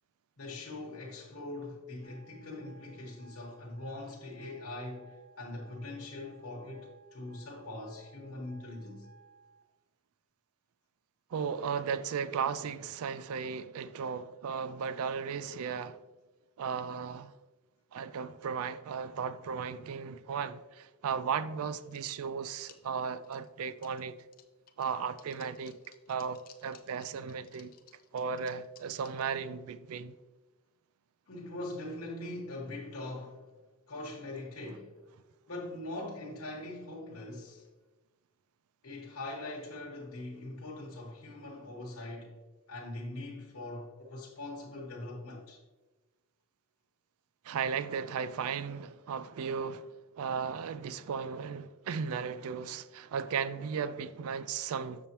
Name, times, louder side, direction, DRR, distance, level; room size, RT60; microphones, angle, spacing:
voice 1, 0.4-9.1 31.3-33.5 33.9-34.9 35.5-37.7 38.8-42.4 42.7-45.6, left 2 dB, 65° left, 1.1 m, -42 dB
sound 1, 2.0-9.6, right 5 dB, 40° right, 0.7 m, -60 dB
voice 2, 11.3-16.0 16.6-17.3 17.9-24.2 24.8-25.8 26.1-27.7 28.1-30.1 47.4-55.1, right 6 dB, 70° right, 0.4 m, -35 dB
sound 2, 21.6-22.3 22.6-24.0 24.3-29.2, left 9 dB, 40° left, 0.5 m, -59 dB
6.9 x 6.8 x 2.9 m
head